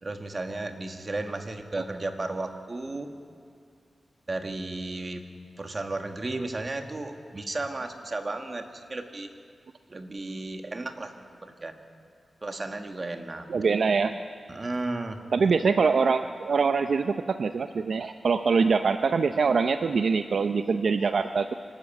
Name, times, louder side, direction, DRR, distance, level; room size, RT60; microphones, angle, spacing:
voice 1, 0.0-3.1 4.3-5.2 5.6-9.3 9.9-11.1 11.4-11.8 12.4-13.5 14.5-15.2, right 2 dB, 35° right, 5 dB, 1.6 m, -34 dB
voice 2, 13.5-14.2 15.3-21.5, right 5 dB, 65° right, 9 dB, 0.5 m, -24 dB
25.5 x 12.5 x 8.8 m, 2.2 s
wide cardioid pair, 105°, 0 cm